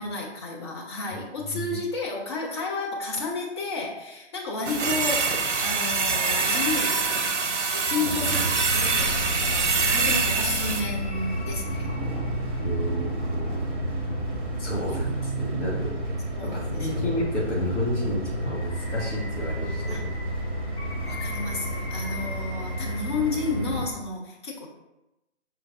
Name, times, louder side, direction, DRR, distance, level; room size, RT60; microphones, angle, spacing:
voice 1, 0.0-7.2 7.7-11.9 16.3-17.0 19.9-20.0 21.0-24.7, left 3 dB, 25° left, -2 dB, 0.5 m, -32 dB
voice 2, 1.1-1.8 8.0-8.4 8.9-9.2 12.6-13.8 14.6-16.5 16.8-20.1, equal, 75° left, -4 dB, 1.3 m, -31 dB
sound 1, 4.6-10.8, right 4 dB, 80° right, 0.7 m, -25 dB
sound 2, 8.1-23.8, right 1 dB, 20° right, 0.7 m, -32 dB
sound 3, 8.7-24.0, equal, 60° left, 1.0 m, -36 dB
5.6 x 3.2 x 2.4 m, 0.94 s
figure-of-eight pair, 140°, 35 cm